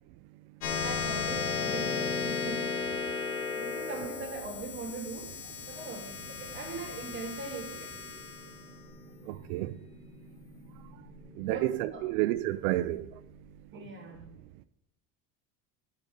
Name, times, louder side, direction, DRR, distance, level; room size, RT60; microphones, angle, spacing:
sound 1, 0.6-11.5, left 5 dB, 85° left, 2.1 m, -35 dB
voice 1, 0.8-2.7 3.5-5.3 5.7-7.9 11.4-12.1 13.7-14.3, right 3 dB, 25° right, 2.4 m, -41 dB
voice 2, 9.3-9.7 11.4-13.1, right 16 dB, 90° right, 0.6 m, -30 dB
9.1 x 5.3 x 5.2 m
cardioid pair, 135°, 44 cm